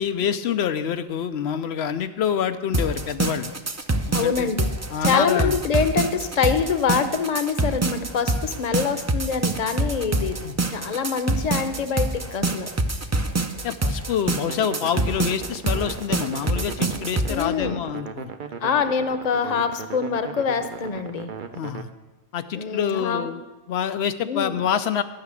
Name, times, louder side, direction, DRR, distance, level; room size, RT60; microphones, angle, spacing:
voice 1, 0.0-3.5 4.1-4.5 4.9-5.5 10.4-10.6 13.6-18.3 21.5-21.9 22.3-23.4 23.7-25.0, left 8 dB, 85° left, 10 dB, 0.9 m, -26 dB
sound 1, 2.7-17.4, right 2 dB, 25° right, 0.4 m, -25 dB
voice 2, 4.1-4.7 5.0-10.4 10.6-12.7 17.3-17.8 18.6-21.3 22.5-23.3 24.2-24.7, left 6 dB, 45° left, 9 dB, 0.8 m, -25 dB
sound 2, 14.5-21.8, right 6 dB, 55° right, 0.8 m, -37 dB
11.5 x 5.9 x 8.2 m, 1.2 s
omnidirectional pair, 1.1 m